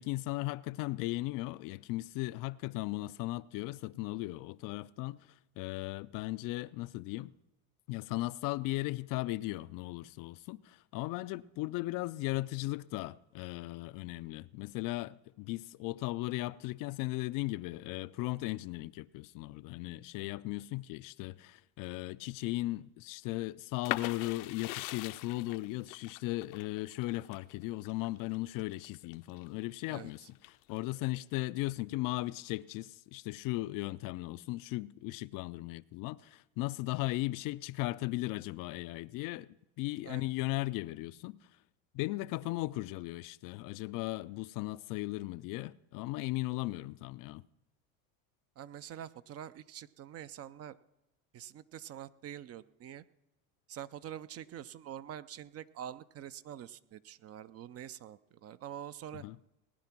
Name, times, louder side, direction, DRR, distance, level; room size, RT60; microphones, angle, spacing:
voice 1, 0.0-7.3 7.9-41.4 41.9-47.4 59.1-59.4, left 19 dB, 50° left, 0.5 m, -37 dB
sound 1, 23.8-29.5 29.9-30.8, left 17 dB, 80° left, 0.8 m, -41 dB
voice 2, 29.9-30.3 40.0-40.3 48.6-50.8 51.3-53.0 53.7-59.2, right 10 dB, 35° right, 0.5 m, -46 dB
19.0 x 9.8 x 6.0 m
supercardioid pair, 100°, 42 cm